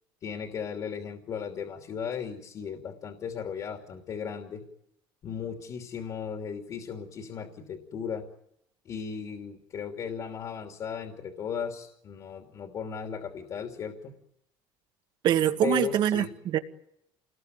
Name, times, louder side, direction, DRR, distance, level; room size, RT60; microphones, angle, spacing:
voice 1, 0.2-4.6 5.2-8.2 8.8-14.1 15.6-16.3, left 7 dB, 40° left, 2.9 m, -36 dB
voice 2, 15.2-16.6, right 11 dB, 55° right, 2.0 m, -24 dB
28.0 x 20.5 x 9.5 m
cardioid pair, 145°, 9 cm